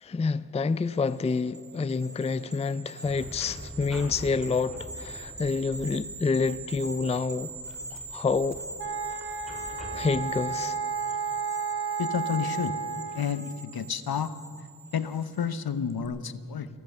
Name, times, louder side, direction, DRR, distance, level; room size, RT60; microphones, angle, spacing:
voice 1, 0.0-7.5 7.9-8.6 9.9-10.8, left 4 dB, 15° left, 0.4 m, -28 dB
sound 1, 0.9-15.6 15.9-16.1, right 3 dB, 40° right, 1.7 m, -43 dB
sound 2, 3.0-10.4, equal, ahead, 3.1 m, -45 dB
sound 3, 8.8-13.5, right 5 dB, 80° right, 1.6 m, -32 dB
voice 2, 12.0-12.7 13.1-14.3 14.9-16.7, left 7 dB, 70° left, 0.8 m, -30 dB
14.5 x 14.5 x 6.7 m
cardioid pair, 45°, 38 cm